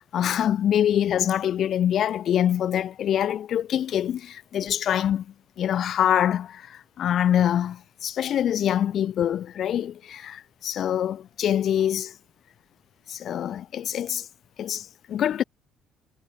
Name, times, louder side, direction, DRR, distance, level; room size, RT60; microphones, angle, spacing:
voice 1, 0.0-5.3 5.6-12.1 13.1-14.3 14.6-15.4, left 10 dB, 55° left, 0.5 m, -25 dB
cardioid pair, 135°, 0 cm